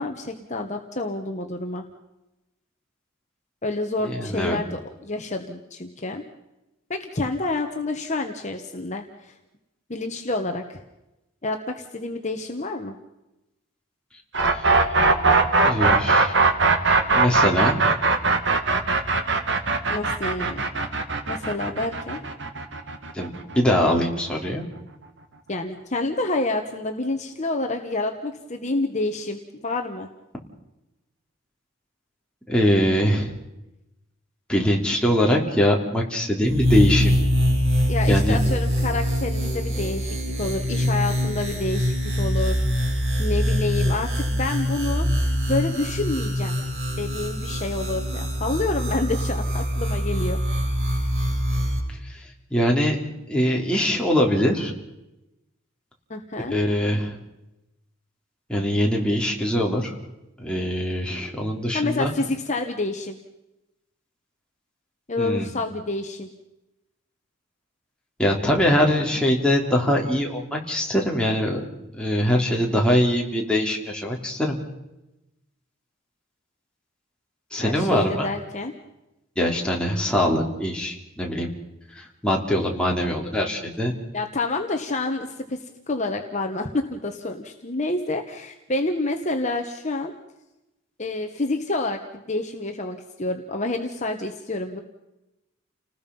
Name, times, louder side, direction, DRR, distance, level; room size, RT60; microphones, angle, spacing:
voice 1, 0.0-1.8 3.6-6.2 6.9-9.4 9.9-10.8 11.4-12.9 19.9-20.6 21.3-22.2 25.5-30.1 37.9-46.6 47.0-50.6 56.1-56.6 61.7-63.2 65.1-66.3 77.6-78.7 84.1-90.1 91.0-94.8, left 2 dB, 35° left, 4 dB, 1.4 m, -28 dB
voice 2, 4.0-4.6 14.5-14.7 15.6-16.3 17.1-17.8 23.1-24.6 32.5-33.3 34.5-37.1 38.1-38.4 52.1-52.2 52.5-53.0 53.3-54.7 56.5-57.2 58.5-59.9 60.4-62.1 65.2-65.5 68.2-71.6 71.9-74.6 77.5-78.3 79.4-81.5 81.9-84.0, equal, 5° left, -1 dB, 3.5 m, -22 dB
sound 1, 14.3-24.2, right 3 dB, 60° right, 2.1 m, -20 dB
sound 2, 36.4-51.8, equal, 80° right, 6.6 m, -24 dB
30.0 x 19.5 x 5.5 m, 0.95 s
head